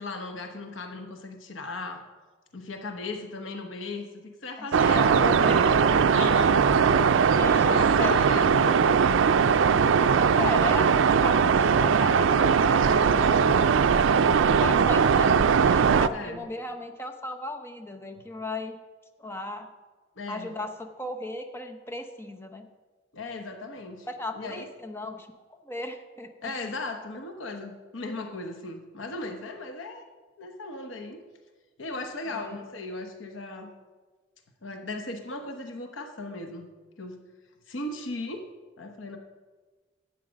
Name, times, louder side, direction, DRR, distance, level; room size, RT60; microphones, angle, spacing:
voice 1, 0.0-2.0 2.5-5.8 6.1-6.6 7.5-9.1 12.8-13.3 15.9-16.5 20.2-20.6 23.1-24.1 24.3-24.7 26.4-30.0 30.4-31.2 31.8-33.7 34.6-36.7 37.0-37.2 37.7-38.5 38.8-39.2, left 2 dB, 85° left, 5 dB, 1.0 m, -37 dB
sound 1, 4.7-16.1, right 6 dB, 80° right, 0.4 m, -20 dB
voice 2, 5.0-6.0 7.3-8.2 10.0-13.4 14.4-15.3 15.6-18.8 19.2-19.7 20.3-22.7 24.1-26.5 32.3-32.7, left 2 dB, 10° left, 5 dB, 0.7 m, -36 dB
11.0 x 8.4 x 5.1 m, 1.3 s
head